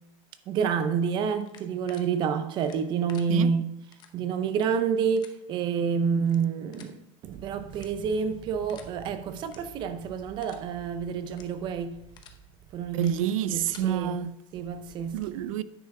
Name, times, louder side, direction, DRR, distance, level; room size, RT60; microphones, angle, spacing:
voice 1, 0.5-3.6 4.1-12.1 12.7-13.1 13.5-14.2 14.5-15.2, right 6 dB, 30° right, 0.6 m, -28 dB
sound 1, 1.4-2.0 2.6-3.2 3.9-4.1 4.5-4.6 5.2-5.3 6.2-6.4 6.7-6.9 7.7-8.1 8.7-8.9 9.4-9.6 9.9-10.1 10.4-10.6 11.2-11.5 11.9-12.4 12.9-13.1 13.5-13.8, left 9 dB, 25° left, 0.8 m, -51 dB
voice 2, 12.9-14.3 15.1-15.6, right 10 dB, 90° right, 0.6 m, -28 dB
9.7 x 5.6 x 4.7 m
supercardioid pair, 170°, 17 cm